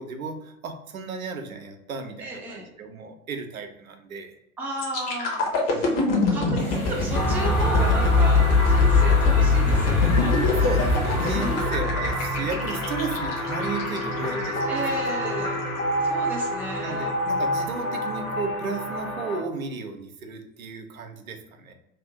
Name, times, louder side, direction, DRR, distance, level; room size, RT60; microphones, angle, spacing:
voice 1, 0.0-4.3 5.7-6.1 10.3-15.6 16.8-21.7, right 4 dB, 70° right, 5 dB, 0.7 m, -35 dB
voice 2, 2.2-2.7 4.6-6.0 6.3-10.5 11.4-11.6 14.7-15.6 16.1-17.1, right 1 dB, 5° right, -4 dB, 0.5 m, -33 dB
sound 1, 4.8-14.6 15.1-15.3, left 4 dB, 40° left, 1.1 m, -22 dB
sound 2, 6.6-11.7, left 1 dB, 80° left, 1.0 m, -39 dB
sound 3, 7.1-19.4, equal, 60° left, 1.4 m, -28 dB
2.8 x 2.5 x 3.6 m, 0.85 s
figure-of-eight pair, 95°, 43 cm